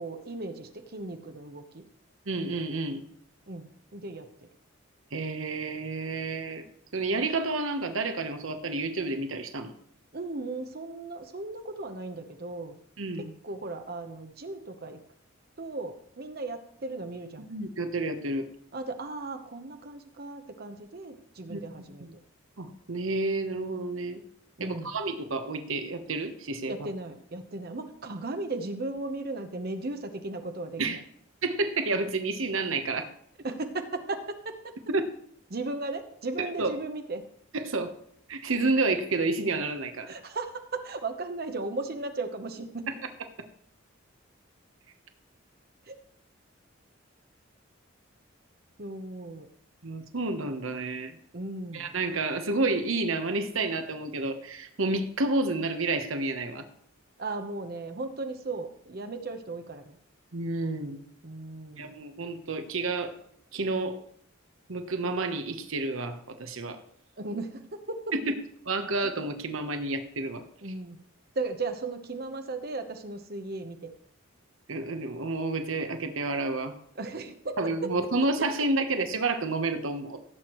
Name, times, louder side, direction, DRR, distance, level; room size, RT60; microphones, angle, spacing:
voice 1, 0.0-1.8 3.5-4.3 10.1-12.8 13.2-15.0 15.6-17.5 18.7-22.1 24.6-25.0 26.7-31.0 33.4-34.6 35.5-37.2 40.1-42.9 45.9-46.0 48.8-49.5 51.3-51.9 57.2-60.0 61.2-62.0 67.2-68.0 70.6-71.0 71.3-73.9 77.0-77.6 77.8-77.9, right 2 dB, 50° right, 6 dB, 0.9 m, -36 dB
voice 2, 2.3-3.0 5.1-6.7 6.9-9.7 13.0-13.3 17.5-18.5 21.5-21.6 22.0-22.1 22.6-24.2 24.6-26.7 30.8-31.0 31.4-33.1 34.9-35.1 36.4-36.7 37.5-37.9 38.3-40.1 42.9-43.0 49.8-51.1 51.7-56.6 60.3-61.0 61.8-63.1 63.5-64.0 64.7-66.8 68.1-68.3 68.7-70.4 74.7-76.7 77.6-80.2, right 3 dB, 80° right, 7 dB, 1.1 m, -30 dB
16.0 x 8.0 x 3.1 m, 0.67 s
head